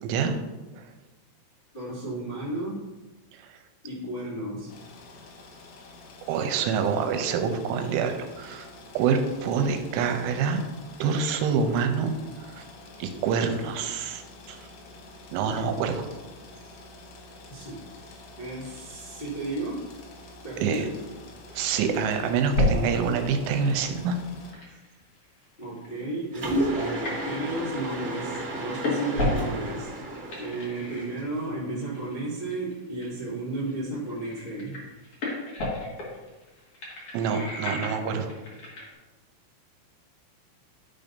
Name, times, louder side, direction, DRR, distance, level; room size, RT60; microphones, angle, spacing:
voice 1, 0.0-0.4 0.7-0.8 3.5-3.6 6.3-8.7 8.9-10.6 11.0-12.1 12.4-12.6 13.0-14.2 14.5-14.6 15.3-16.1 20.6-20.9 21.5-24.2 37.1-38.3, right 6 dB, 85° right, 5 dB, 3.1 m, -26 dB
voice 2, 1.7-2.9 3.8-4.7 10.0-10.2 17.5-19.9 20.4-21.0 25.6-29.9 30.4-34.8, right 2 dB, 40° left, -10 dB, 0.8 m, -33 dB
sound 1, 4.7-24.5, left 2 dB, 85° left, 3.5 m, -48 dB
sound 2, 22.5-22.9 23.2-27.5 27.8-28.1 28.3-29.8 30.1-31.5 31.9-32.1 32.5-33.2 33.5-33.7 34.1-38.9, left 1 dB, 60° left, 1.5 m, -31 dB
Mechanisms, 26.3-31.4, right 1 dB, 40° right, 1.1 m, -32 dB
12.0 x 5.2 x 2.6 m, 1.2 s
omnidirectional pair, 5.6 m